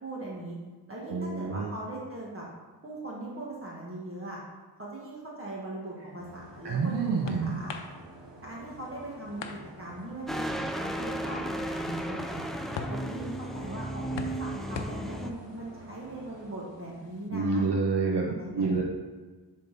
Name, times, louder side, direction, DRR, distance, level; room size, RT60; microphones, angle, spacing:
voice 1, 0.0-0.6 0.9-2.5 2.8-4.4 4.8-7.8 8.4-12.5 12.9-17.7 18.3-18.8, right 1 dB, 30° right, -4 dB, 1.4 m, -40 dB
voice 2, 1.1-1.7 6.6-7.6 17.3-18.3 18.5-18.8, right 4 dB, 70° right, -1 dB, 0.9 m, -27 dB
sound 1, 6.2-17.3, left 5 dB, 85° left, 0.7 m, -45 dB
sound 2, 6.2-16.5, right 2 dB, 90° right, 1.2 m, -50 dB
sound 3, 10.3-15.3, right 1 dB, ahead, 0.4 m, -34 dB
10.5 x 3.9 x 4.0 m, 1.3 s
wide cardioid pair, 120°, 42 cm